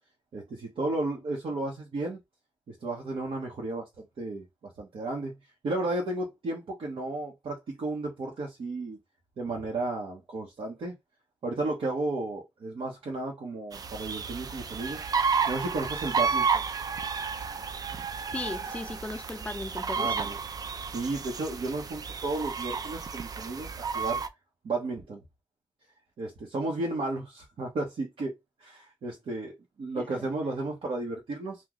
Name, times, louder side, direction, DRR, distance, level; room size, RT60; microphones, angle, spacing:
voice 1, 0.3-2.2 2.7-5.3 5.6-9.0 9.4-11.0 11.4-15.0 15.5-16.6 20.0-20.4 20.9-24.2 24.6-25.2 26.2-28.3 28.6-31.6, right 2 dB, 75° right, 1.0 m, -33 dB
sound 1, 13.7-24.3, right 5 dB, 45° right, 0.4 m, -31 dB
voice 2, 18.3-20.1 29.9-30.3, left 2 dB, 15° left, 0.4 m, -37 dB
3.1 x 2.3 x 3.8 m
wide cardioid pair, 140°, 9 cm